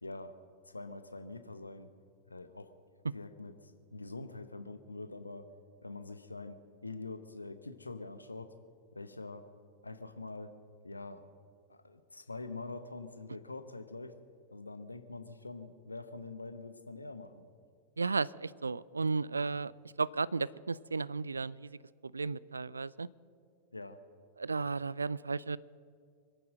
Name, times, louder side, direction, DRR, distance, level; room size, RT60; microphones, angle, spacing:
voice 1, 0.0-0.4 0.7-1.9 2.3-2.7 3.1-5.5 5.8-8.6 8.9-9.5 9.8-10.6 10.8-11.3 11.7-14.2 14.5-17.5 23.7-24.0, left 3 dB, 80° left, 10 dB, 0.9 m, -45 dB
voice 2, 18.0-19.7 20.0-21.8 22.0-23.1 24.4-25.6, right 4 dB, 75° right, 22 dB, 0.3 m, -34 dB
25.0 x 9.0 x 6.5 m, 2.3 s
figure-of-eight pair, 90°, 0 cm